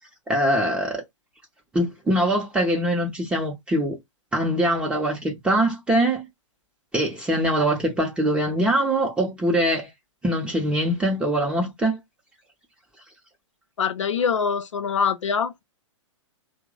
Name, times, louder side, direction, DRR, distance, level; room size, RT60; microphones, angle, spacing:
voice 1, 0.3-1.0 1.7-4.0 4.3-6.2 6.9-9.9 10.2-12.0, right 1 dB, 5° right, 0.6 m, -23 dB
voice 2, 13.8-15.6, left 6 dB, 70° left, 0.5 m, -24 dB
2.9 x 2.0 x 3.6 m
figure-of-eight pair, 110°, 16 cm